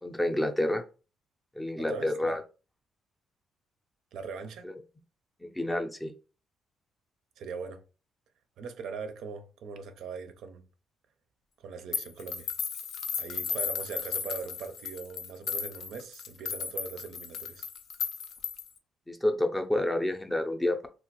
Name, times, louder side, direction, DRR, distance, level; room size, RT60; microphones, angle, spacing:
voice 1, 0.0-0.8 1.6-2.4 4.6-4.7 5.4-6.1 19.1-20.9, left 1 dB, 10° left, 0.4 m, -29 dB
voice 2, 1.8-2.4 4.1-4.7 7.4-7.8 8.6-10.7 11.6-12.5 13.2-17.7, right 5 dB, 80° right, 0.5 m, -41 dB
sound 1, 11.9-18.8, left 6 dB, 70° left, 0.5 m, -35 dB
2.8 x 2.3 x 2.9 m
cardioid pair, 90°, 0 cm